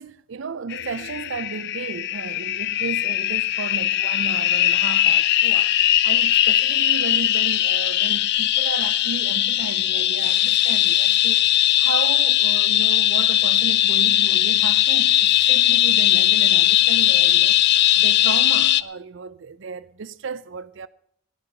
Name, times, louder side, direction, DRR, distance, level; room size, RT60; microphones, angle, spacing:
voice 1, 0.0-5.7 6.0-11.5 11.8-17.6 17.9-20.9, right 5 dB, 60° right, 0.5 m, -34 dB
sound 1, 0.7-18.8, left 13 dB, 55° left, 0.4 m, -19 dB
13.5 x 10.5 x 6.6 m
head